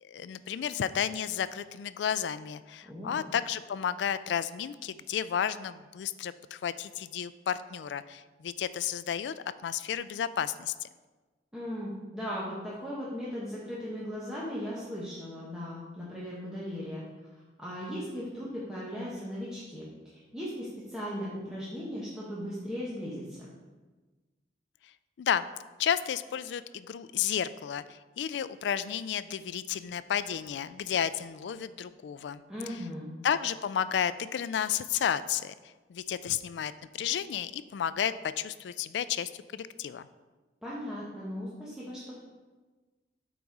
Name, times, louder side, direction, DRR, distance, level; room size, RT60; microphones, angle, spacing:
voice 1, 0.0-9.3 9.6-10.9 25.2-25.4 25.8-32.4 32.7-32.8 33.2-35.5 35.9-40.1, left 8 dB, 80° left, 15 dB, 0.3 m, -32 dB
voice 2, 2.8-3.2 11.5-17.0 17.6-23.4 32.5-33.1 40.6-42.1, equal, 5° right, -8 dB, 1.1 m, -37 dB
8.4 x 4.1 x 4.7 m, 1.3 s
head